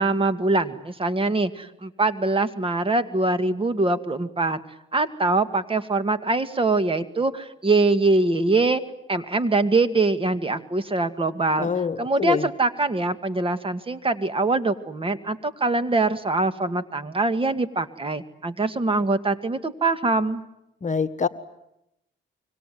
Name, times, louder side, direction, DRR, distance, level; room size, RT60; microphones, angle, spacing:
voice 1, 0.0-4.6 4.9-8.8 9.1-11.7 12.0-20.4, right 3 dB, 25° right, 11 dB, 2.0 m, -23 dB
voice 2, 11.6-12.4 20.8-21.3, left 5 dB, 40° left, 10 dB, 1.5 m, -25 dB
26.0 x 24.5 x 9.3 m, 0.84 s
cardioid pair, 90°, 20 cm